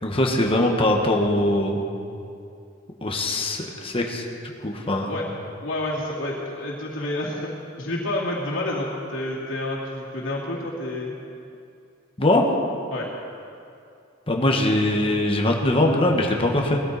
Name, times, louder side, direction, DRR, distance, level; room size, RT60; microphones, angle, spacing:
voice 1, 0.0-1.9 3.0-4.2 4.6-5.2 12.2-12.5 14.3-16.8, left 1 dB, 30° left, 1 dB, 1.4 m, -21 dB
voice 2, 5.6-7.5 7.8-11.1 12.9-13.1, left 1 dB, 80° left, -4 dB, 2.6 m, -29 dB
19.0 x 13.0 x 4.1 m, 2.5 s
head